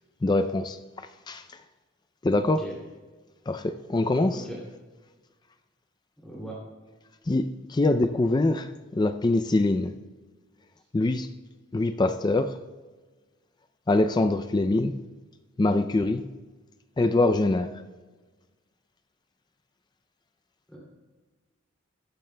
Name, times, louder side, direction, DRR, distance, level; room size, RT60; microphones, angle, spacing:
voice 1, 0.2-1.4 2.2-2.7 3.5-4.4 7.3-9.9 10.9-11.3 11.7-12.6 13.9-15.0 15.6-16.3 17.0-17.7, left 2 dB, 20° left, 10 dB, 0.3 m, -24 dB
voice 2, 2.4-2.7 4.3-4.6 6.2-6.5 20.7-20.8, right 1 dB, 5° left, -6 dB, 2.6 m, -39 dB
15.0 x 14.0 x 2.2 m, 1.3 s
head